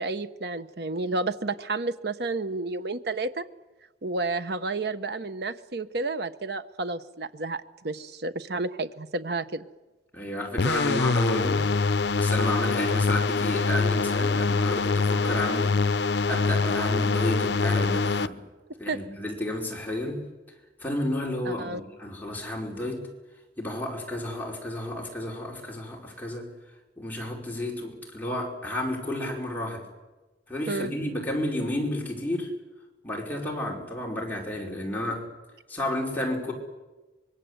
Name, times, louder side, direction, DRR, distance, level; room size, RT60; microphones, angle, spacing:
voice 1, 0.0-3.4 4.0-9.7 18.9-19.0 21.4-21.8 30.7-30.9, right 3 dB, 65° right, 11 dB, 1.2 m, -31 dB
voice 2, 10.1-11.7 12.1-15.8 16.3-18.4 18.8-20.2 20.8-23.1 23.6-26.5 27.0-29.8 30.5-32.5 33.0-35.3 35.7-36.5, left 1 dB, 10° left, -1 dB, 4.9 m, -31 dB
sound 1, 10.6-18.3, left 4 dB, 70° left, 0.8 m, -24 dB
25.5 x 22.5 x 8.1 m, 1.2 s
head